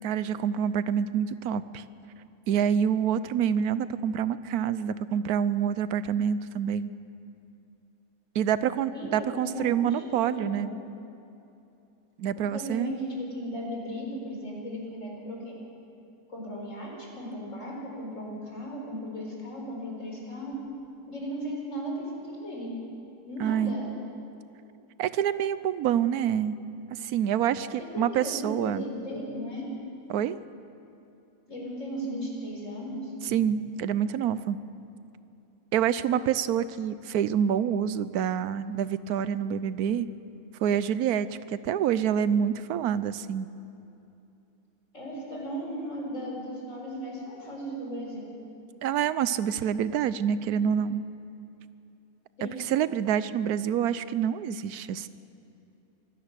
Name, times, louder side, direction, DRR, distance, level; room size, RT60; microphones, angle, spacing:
voice 1, 0.0-1.8 2.5-6.9 8.3-10.7 12.2-13.0 23.4-23.7 25.0-26.6 26.9-28.8 30.1-30.4 33.3-34.6 35.7-40.1 40.6-43.5 48.8-51.0 52.4-55.1, right 9 dB, 90° right, 15 dB, 1.2 m, -27 dB
voice 2, 8.9-10.7 12.3-15.5 16.3-20.6 21.1-22.7 23.3-23.9 27.8-29.7 31.5-33.1 44.9-48.2 52.4-52.6, equal, 55° left, -1 dB, 4.9 m, -36 dB
24.0 x 16.5 x 6.7 m, 2.8 s
omnidirectional pair, 1.5 m